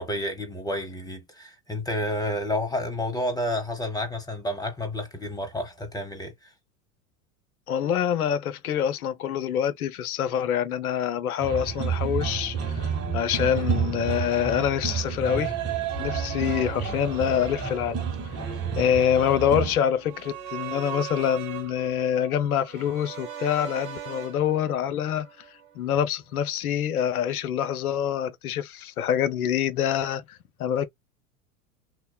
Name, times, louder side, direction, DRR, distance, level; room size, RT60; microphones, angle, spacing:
voice 1, 0.0-6.3, left 1 dB, 10° left, 1.1 m, -30 dB
voice 2, 7.7-15.5 16.0-18.0 18.7-25.3 25.8-30.9, left 9 dB, 75° left, 0.7 m, -26 dB
sound 1, 11.4-19.8, right 6 dB, 35° right, 1.1 m, -30 dB
sound 2, 15.9-26.0 26.3-26.4, right 6 dB, 70° right, 1.0 m, -40 dB
3.0 x 2.1 x 2.2 m
hypercardioid pair, 90°, 44 cm